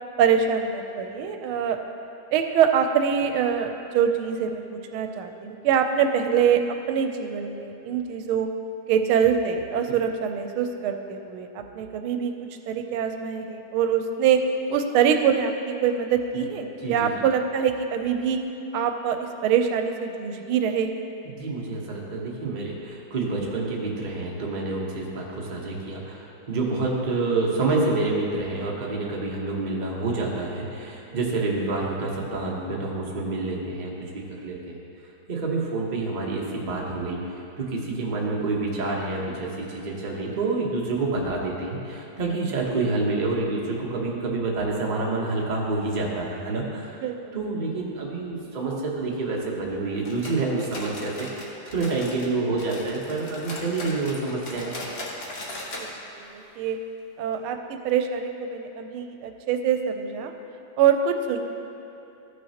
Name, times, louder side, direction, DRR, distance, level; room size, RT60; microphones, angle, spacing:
voice 1, 0.2-1.8 2.3-8.5 8.9-12.3 12.7-14.4 14.7-18.4 18.7-21.0 31.1-31.2 47.0-47.4 55.8-55.9 56.2-56.8 57.2-60.3 60.8-61.4, right 7 dB, 85° right, 6 dB, 1.4 m, -24 dB
voice 2, 16.8-17.2 21.2-34.7 35.3-46.9 47.3-54.8, right 3 dB, 30° right, -3 dB, 0.8 m, -28 dB
sound 1, 50.0-52.3 52.6-55.9 56.2-56.3 56.7-56.8 57.3-57.4, left 1 dB, 40° left, 0.9 m, -38 dB
13.5 x 6.3 x 2.9 m, 2.8 s
omnidirectional pair, 2.3 m